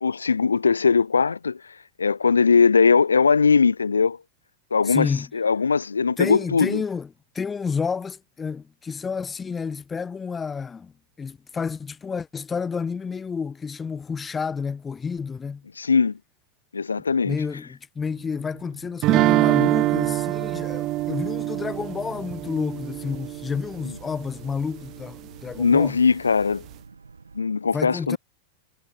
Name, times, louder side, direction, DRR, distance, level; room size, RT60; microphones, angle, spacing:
voice 1, 0.0-1.6 2.0-4.2 4.7-6.8 15.8-16.2 16.7-17.4 23.8-23.9 25.6-26.6 27.3-28.2, left 5 dB, 75° left, 0.7 m, -20 dB
voice 2, 4.9-5.3 6.2-7.1 7.3-10.9 11.2-15.6 17.2-26.0 27.7-28.2, left 5 dB, 15° left, 0.6 m, -30 dB
Boat Water vehicle, 18.1-27.4, right 4 dB, 75° right, 2.7 m, -48 dB
sound 1, 19.0-24.0, right 17 dB, 35° right, 0.4 m, -24 dB
figure-of-eight pair, 90°, 0 cm